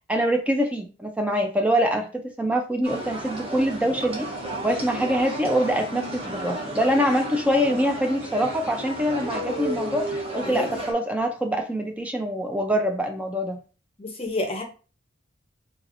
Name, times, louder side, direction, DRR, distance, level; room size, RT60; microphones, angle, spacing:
voice 1, 0.1-2.1 2.4-4.3 4.6-13.6, equal, 5° right, 3 dB, 0.4 m, -24 dB
sound 1, 2.8-10.9, right 1 dB, 30° right, 0.9 m, -33 dB
voice 2, 10.5-10.8 14.0-14.6, left 2 dB, 30° left, 3 dB, 0.7 m, -29 dB
3.9 x 3.2 x 2.5 m, 0.34 s
head